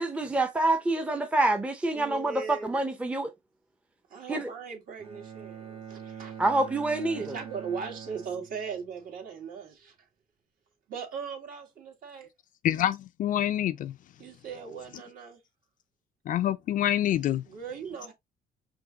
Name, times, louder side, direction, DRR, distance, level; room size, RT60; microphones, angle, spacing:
voice 1, 0.0-3.3 4.3-4.5 6.4-7.4, right 2 dB, 5° right, 0.7 m, -27 dB
voice 2, 1.9-2.8 4.1-6.4 7.1-9.9 10.9-12.3 14.2-15.4 17.5-18.1, right 6 dB, 55° right, 1.8 m, -39 dB
Bowed string instrument, 5.0-9.1, right 8 dB, 35° right, 0.9 m, -44 dB
voice 3, 12.6-14.0 16.3-17.4, left 11 dB, 50° left, 0.4 m, -26 dB
5.2 x 2.8 x 2.8 m
cardioid pair, 110°, 17 cm